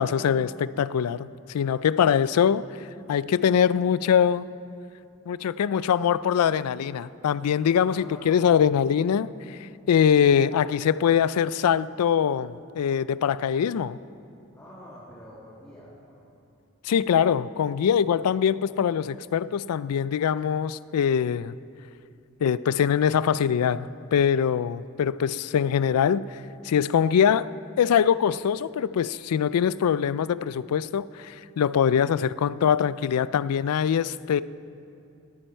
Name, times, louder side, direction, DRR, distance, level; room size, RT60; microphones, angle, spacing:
voice 1, 0.0-2.7 3.1-4.5 5.3-14.0 16.8-21.5 22.4-26.4 26.6-27.5 27.8-34.4, left 8 dB, 90° left, 17 dB, 0.3 m, -23 dB
voice 2, 7.8-8.5 14.5-16.3, equal, 15° left, -9 dB, 2.1 m, -47 dB
18.5 x 9.9 x 4.4 m, 2.6 s
head